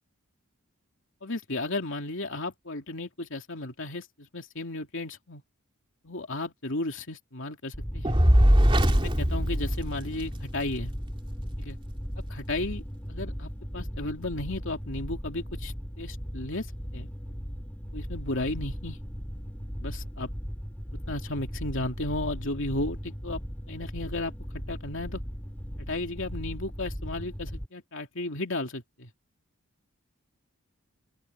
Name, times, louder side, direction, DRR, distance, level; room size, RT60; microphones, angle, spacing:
voice 1, 1.2-5.4 6.0-8.2 9.0-10.9 11.6-11.8 12.3-12.8 13.1-16.7 16.9-17.1 17.9-19.0 19.8-20.3 20.9-23.4 23.7-25.2 25.8-29.1, left 2 dB, 60° left, 2.9 m, -34 dB
sound 1, 7.7-27.7, equal, 10° left, 4.8 m, -37 dB
Fire, 8.0-10.5, equal, 25° right, 3.0 m, -21 dB
open air
head